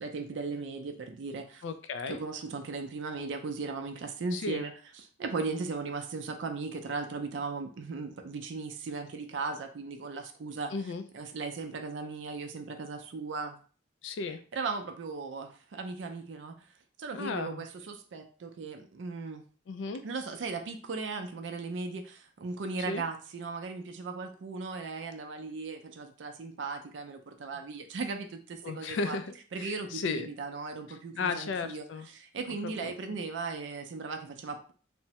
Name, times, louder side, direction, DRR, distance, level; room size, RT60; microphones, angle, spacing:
voice 1, 0.0-1.6 2.1-4.7 5.0-10.7 11.1-13.6 14.5-16.6 17.0-19.4 20.0-29.2 29.5-34.7, right 4 dB, 75° right, 5 dB, 0.4 m, -37 dB
voice 2, 1.6-2.2 4.3-4.6 10.7-11.0 14.0-14.4 17.1-17.6 19.7-20.0 22.9-23.0 28.6-30.3 31.1-32.1 32.6-33.2, left 4 dB, 80° left, 10 dB, 0.4 m, -35 dB
3.3 x 2.0 x 2.8 m, 0.39 s
head